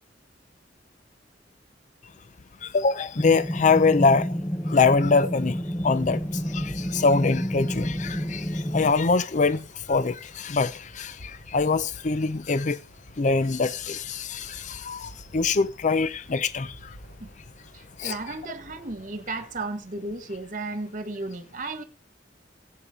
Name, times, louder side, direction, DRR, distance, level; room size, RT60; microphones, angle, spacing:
voice 1, 2.6-4.3 4.7-5.6 5.8-6.2 6.5-12.8 13.2-16.7 18.0-18.2, left 4 dB, 45° left, 0.5 m, -23 dB
sound 1, 3.2-8.9, equal, 15° left, 0.8 m, -30 dB
sound 2, 4.8-19.6, equal, 70° left, 3.9 m, -49 dB
voice 2, 17.7-21.8, right 2 dB, 45° right, 1.5 m, -34 dB
15.0 x 8.4 x 3.7 m
head